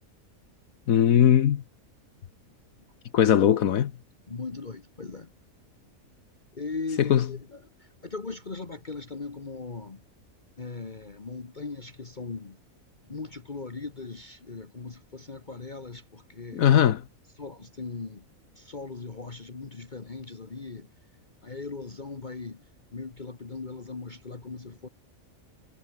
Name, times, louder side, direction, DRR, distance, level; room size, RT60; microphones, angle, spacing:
voice 1, 0.9-1.6 3.1-3.9 7.1-7.3 16.5-17.0, left 10 dB, 80° left, 1.4 m, -19 dB
voice 2, 4.3-5.3 6.5-7.6 8.0-10.0 10.6-12.6 13.1-16.7 17.4-18.2 18.6-20.9 21.4-22.6 22.9-24.9, left 4 dB, 35° left, 1.6 m, -38 dB
omnidirectional pair, 1.4 m